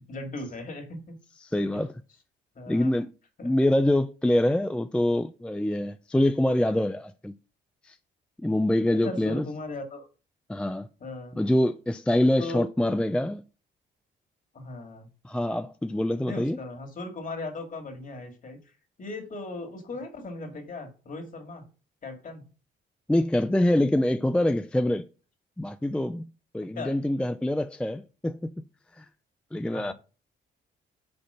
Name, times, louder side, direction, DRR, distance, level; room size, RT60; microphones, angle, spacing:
voice 1, 0.1-1.2 1.7-1.8 2.6-2.9 3.4-3.5 8.9-10.1 11.0-11.4 12.4-12.7 14.5-15.1 16.2-18.7 19.0-21.7 22.0-22.5 26.7-27.0 29.7-29.9, left 2 dB, 45° left, 2.1 m, -38 dB
voice 2, 1.5-1.9 2.7-3.1 3.4-7.3 7.9-8.0 8.4-9.5 10.5-10.9 11.4-13.4 15.2-16.6 23.1-25.1 25.6-28.5 29.0-29.1 29.5-29.9, left 1 dB, 5° left, 0.4 m, -25 dB
5.3 x 4.3 x 5.6 m
cardioid pair, 90°, 20 cm